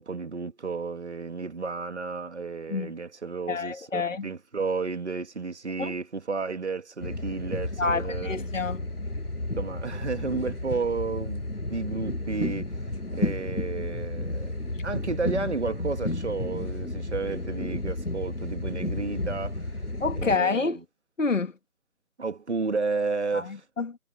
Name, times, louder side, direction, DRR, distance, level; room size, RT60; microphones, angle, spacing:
voice 1, 0.0-8.4 9.6-12.8 13.1-14.6 14.8-19.7 20.1-20.7 22.2-23.6, right 4 dB, 50° right, 2.1 m, -32 dB
voice 2, 3.5-4.3 5.8-5.9 7.8-8.9 20.0-20.8 21.2-21.5 23.3-24.0, left 4 dB, 55° left, 2.1 m, -28 dB
sound 1, 7.0-20.4, left 2 dB, 90° left, 5.6 m, -32 dB
figure-of-eight pair, 165°, 45 cm